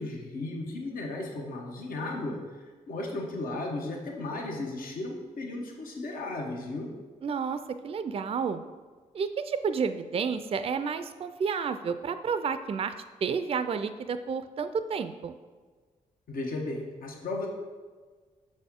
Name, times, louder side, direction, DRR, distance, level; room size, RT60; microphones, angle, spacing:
voice 1, 0.0-2.4 2.9-6.9 16.3-17.5, left 2 dB, 70° left, 1 dB, 1.0 m, -35 dB
voice 2, 7.2-7.6 7.8-8.6 9.1-12.9 13.2-15.3, right 6 dB, 40° right, 10 dB, 0.3 m, -30 dB
6.2 x 4.2 x 3.6 m, 1.4 s
cardioid pair, 55°, 15 cm